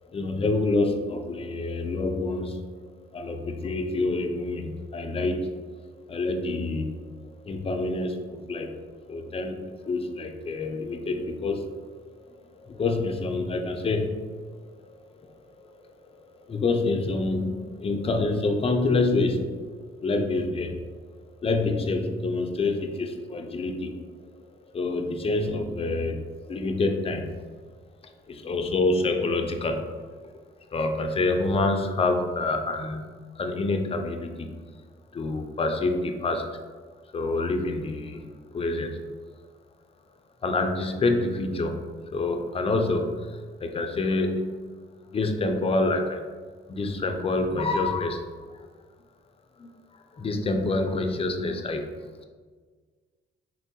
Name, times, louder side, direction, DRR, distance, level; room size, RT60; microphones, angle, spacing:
voice 1, 0.0-2.7 3.1-5.5 6.1-8.8 9.1-11.9 12.2-15.8 16.3-19.7 20.0-21.0 21.4-24.0 24.3-27.4 28.0-29.8 30.7-33.1 33.4-34.5 35.1-36.6 37.1-38.3 38.5-39.0 40.4-41.8 42.1-44.7 45.1-46.2 46.7-48.2 48.5-48.7 49.6-49.7 50.1-51.9, left 2 dB, 30° left, 5 dB, 0.4 m, -27 dB
4.1 x 2.2 x 2.7 m, 1.5 s
cardioid pair, 90°, 20 cm